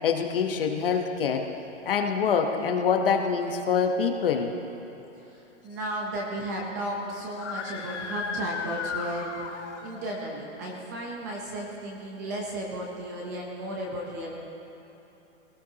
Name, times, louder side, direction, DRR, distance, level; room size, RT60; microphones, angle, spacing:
voice 1, 0.0-1.5 1.9-4.5, left 6 dB, 50° left, 4 dB, 1.1 m, -25 dB
voice 2, 5.2-14.4, right 1 dB, 15° right, -1 dB, 0.7 m, -34 dB
Screaming, 7.3-10.1, left 5 dB, 70° left, 1.3 m, -35 dB
19.0 x 18.0 x 2.9 m, 2.9 s
hypercardioid pair, 180°, 37 cm